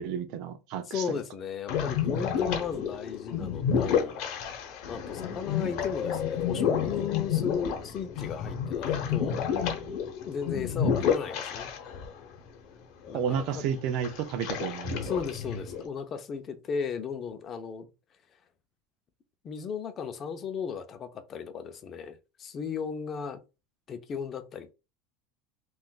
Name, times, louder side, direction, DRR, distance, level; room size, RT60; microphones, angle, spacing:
voice 1, 0.0-1.0 13.1-15.0, right 8 dB, 60° right, 0.5 m, -31 dB
voice 2, 0.9-4.2 4.9-9.4 10.2-11.7 13.1-13.6 15.0-17.9 19.4-23.4 23.9-24.7, left 6 dB, 35° left, 0.5 m, -35 dB
sound 1, 1.7-12.1 12.4-12.5 13.1-13.5 14.0-15.8, left 7 dB, 60° left, 0.8 m, -30 dB
3.6 x 2.4 x 2.4 m
supercardioid pair, 120°, 0 cm